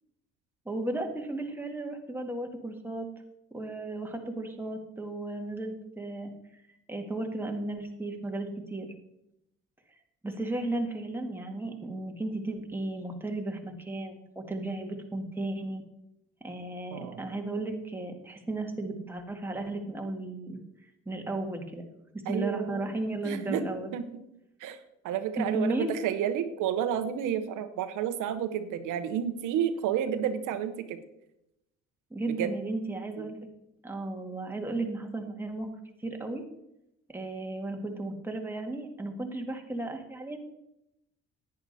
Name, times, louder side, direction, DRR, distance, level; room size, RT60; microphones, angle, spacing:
voice 1, 0.7-3.1 3.5-6.6 6.9-8.9 10.2-15.8 16.4-20.6 21.1-21.8 22.3-23.9 25.4-25.9 32.1-33.5 33.8-35.7 36.0-36.4 37.1-40.4, right 2 dB, 5° right, 2 dB, 1.9 m, -34 dB
voice 2, 16.9-17.3 22.3-22.9 23.2-23.7 23.9-24.0 24.6-24.8 25.0-31.0 32.4-32.5 33.2-33.3, right 9 dB, 90° right, 10 dB, 0.9 m, -31 dB
10.5 x 9.6 x 4.1 m, 0.84 s
cardioid pair, 90°, 30 cm